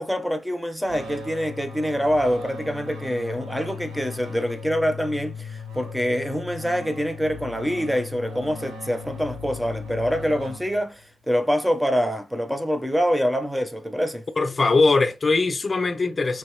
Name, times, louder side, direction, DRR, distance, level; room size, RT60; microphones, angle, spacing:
voice 1, 0.0-14.2, equal, 5° right, 0.7 m, -25 dB
sound 1, 0.8-11.1, left 4 dB, 90° right, 1.8 m, -37 dB
voice 2, 14.4-16.4, left 3 dB, 30° left, 0.7 m, -21 dB
4.6 x 3.1 x 2.8 m
cardioid pair, 80°, 0 cm